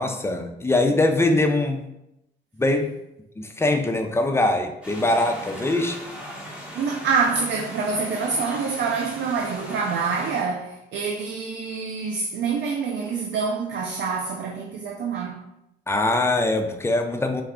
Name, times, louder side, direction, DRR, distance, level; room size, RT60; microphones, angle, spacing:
voice 1, 0.0-1.8 2.6-2.9 3.4-6.0 15.9-17.4, left 2 dB, 15° left, 0.4 m, -22 dB
sound 1, 4.8-10.4, equal, 5° right, 1.0 m, -38 dB
voice 2, 6.7-15.4, right 5 dB, 65° right, 0.5 m, -26 dB
4.1 x 2.3 x 3.6 m
cardioid pair, 90°, 20 cm